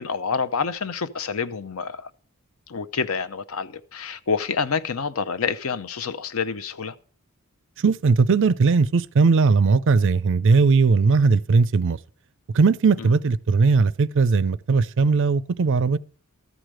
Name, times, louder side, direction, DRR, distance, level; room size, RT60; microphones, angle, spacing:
voice 1, 0.0-2.1 2.7-7.0 13.0-13.1, left 5 dB, 65° left, 0.7 m, -28 dB
voice 2, 7.8-12.0 12.5-16.0, right 4 dB, 55° right, 0.4 m, -18 dB
13.5 x 5.0 x 7.5 m
head